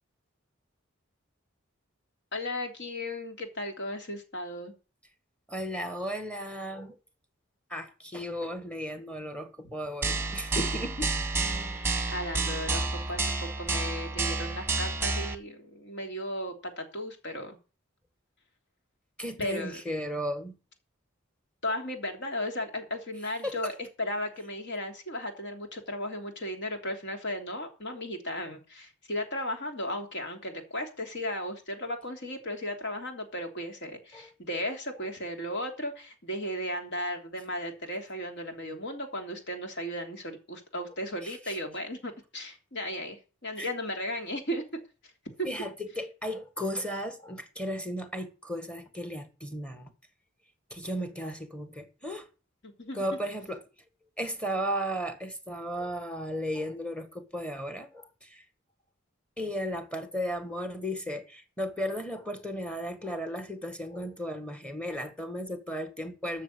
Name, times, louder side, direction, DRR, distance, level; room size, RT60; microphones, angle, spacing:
voice 1, 2.3-4.7 11.4-17.6 19.4-19.8 21.6-44.6 45.4-45.5 52.6-53.0, left 1 dB, 60° left, 3.2 m, -35 dB
voice 2, 5.5-7.0 7.7-11.2 19.2-20.6 23.4-23.7 34.1-34.3 41.2-41.6 43.6-43.7 45.4-49.9 50.7-52.3 52.9-53.6 54.2-58.4 59.4-66.4, equal, 5° left, 1.8 m, -35 dB
sound 1, 10.0-15.3, right 3 dB, 10° right, 1.3 m, -30 dB
13.5 x 6.8 x 7.8 m
head